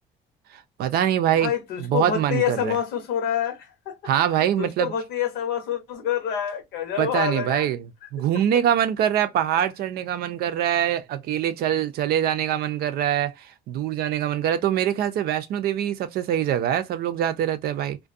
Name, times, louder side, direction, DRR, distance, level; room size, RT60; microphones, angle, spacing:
voice 1, 0.8-1.5 1.8-2.8 4.1-4.9 7.0-7.9 8.1-13.3 13.7-18.0, right 10 dB, 70° right, 0.5 m, -24 dB
voice 2, 1.3-3.9 4.6-7.7, left 9 dB, 90° left, 0.9 m, -27 dB
2.4 x 2.2 x 2.5 m
cardioid pair, 110°, 17 cm